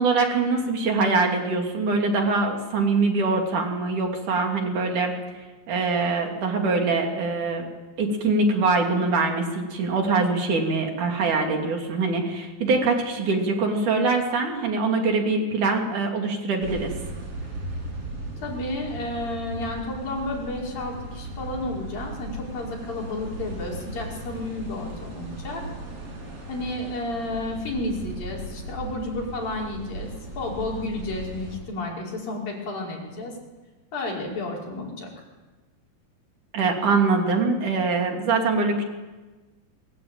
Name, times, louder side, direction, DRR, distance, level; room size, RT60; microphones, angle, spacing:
voice 1, 0.0-5.1 5.7-7.6 8.0-16.9 36.5-38.8, right 3 dB, 60° right, 2 dB, 4.3 m, -23 dB
sound 1, 16.6-31.6, right 1 dB, 40° right, 6.7 m, -37 dB
voice 2, 18.4-25.6 26.5-30.1 30.4-33.3 33.9-35.1, left 2 dB, 80° left, -2 dB, 6.9 m, -31 dB
22.5 x 22.5 x 9.0 m, 1.2 s
omnidirectional pair, 4.0 m